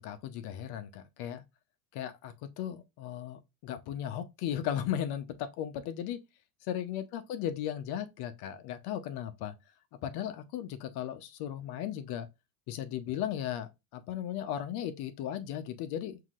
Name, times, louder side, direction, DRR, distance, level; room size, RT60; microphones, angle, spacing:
voice 1, 0.0-1.4 1.9-6.2 6.6-9.5 10.0-12.3 12.7-16.2, left 10 dB, 55° left, 0.8 m, -36 dB
5.7 x 2.8 x 2.4 m
supercardioid pair, 105°, 47 cm